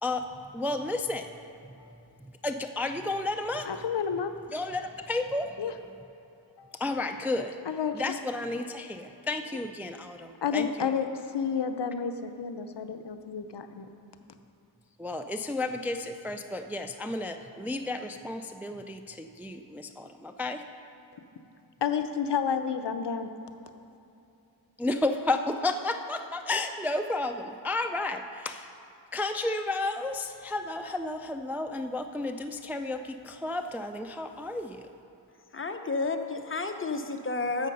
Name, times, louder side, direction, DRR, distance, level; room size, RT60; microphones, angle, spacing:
voice 1, 0.0-1.5 2.4-3.8 4.5-5.6 6.8-7.6 7.9-10.9 15.0-20.6 24.8-28.7 29.1-34.9, left 2 dB, 5° right, 0.3 m, -32 dB
voice 2, 3.6-4.3 5.6-5.7 6.6-6.7 7.7-8.2 10.4-13.9 21.8-23.3, left 7 dB, 65° left, 0.6 m, -30 dB
voice 3, 35.5-37.7, left 3 dB, 30° left, 0.7 m, -31 dB
11.0 x 7.4 x 5.3 m
wide cardioid pair, 95°, 45 cm